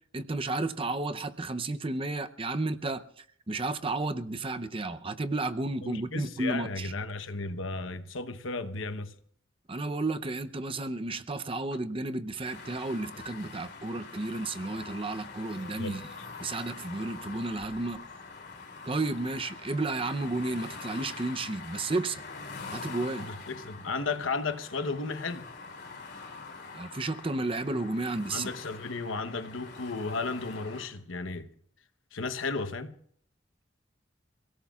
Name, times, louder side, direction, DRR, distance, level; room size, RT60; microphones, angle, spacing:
voice 1, 0.1-6.9 9.7-16.0 16.4-18.0 18.8-22.2 22.7-23.3 26.7-28.5, right 2 dB, 30° right, 0.7 m, -32 dB
voice 2, 5.8-9.1 15.7-16.0 23.3-25.5 28.3-31.5 32.1-32.9, left 3 dB, 90° left, 1.0 m, -34 dB
sound 1, 12.4-30.9, left 4 dB, 55° left, 2.9 m, -44 dB
29.5 x 17.5 x 2.4 m
head